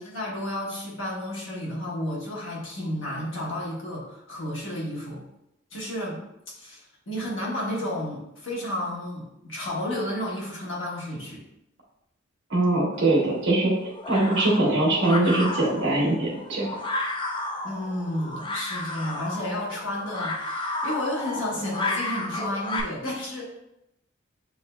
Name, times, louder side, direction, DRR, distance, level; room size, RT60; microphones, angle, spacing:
voice 1, 0.0-5.2 5.7-6.2 6.5-11.4 17.6-23.6, left 1 dB, 80° left, -4 dB, 1.3 m, -32 dB
voice 2, 12.5-13.7 14.1-16.8, right 2 dB, 65° right, -4 dB, 1.1 m, -22 dB
sound 1, 12.9-22.8, left 2 dB, 25° left, 0.4 m, -33 dB
7.1 x 2.8 x 2.2 m, 0.84 s
head